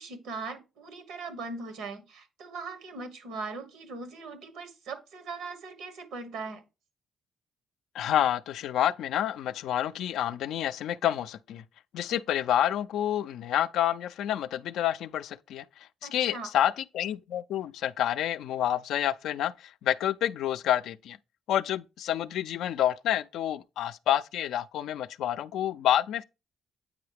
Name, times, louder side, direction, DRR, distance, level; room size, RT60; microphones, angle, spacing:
voice 1, 0.0-6.6 16.0-16.5, right 4 dB, 90° right, 1.3 m, -40 dB
voice 2, 7.9-11.6 11.9-15.6 16.0-21.2 21.5-26.2, left 11 dB, 80° left, 0.3 m, -28 dB
8.5 x 4.7 x 3.4 m
cardioid pair, 90°, 0 cm